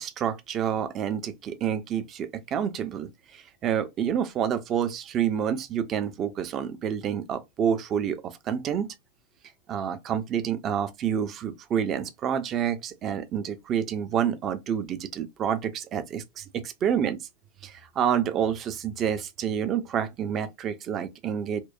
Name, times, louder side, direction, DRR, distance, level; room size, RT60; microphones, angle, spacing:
voice 1, 0.0-8.9 9.7-17.2 17.6-21.6, right 8 dB, 30° right, 0.5 m, -28 dB
4.4 x 2.0 x 2.4 m
figure-of-eight pair, 90°, 0 cm